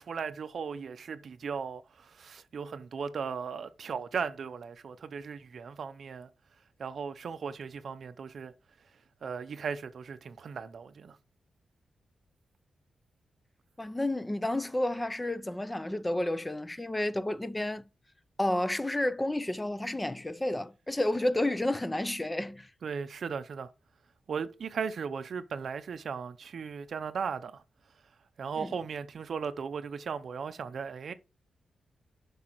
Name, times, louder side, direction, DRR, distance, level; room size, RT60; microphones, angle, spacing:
voice 1, 0.0-6.3 6.8-8.5 9.2-11.2 22.8-23.7 24.3-27.6 28.4-31.1, right 6 dB, 60° right, 0.5 m, -37 dB
voice 2, 13.8-17.8 18.4-22.7 28.6-28.7, left 1 dB, 15° left, 0.4 m, -31 dB
7.5 x 5.3 x 3.0 m
wide cardioid pair, 110°, 0 cm